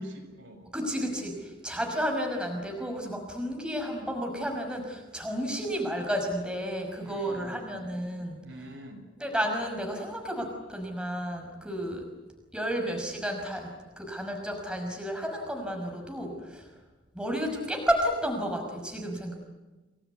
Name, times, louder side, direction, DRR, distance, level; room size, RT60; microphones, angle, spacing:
voice 1, 0.0-0.7 7.0-7.8 8.4-9.0, equal, 75° right, 4 dB, 6.4 m, -44 dB
voice 2, 0.7-8.4 9.2-12.0 12.5-13.7 14.0-16.7 17.1-19.3, equal, 5° right, 2 dB, 5.7 m, -32 dB
28.5 x 20.5 x 9.5 m, 1.2 s
head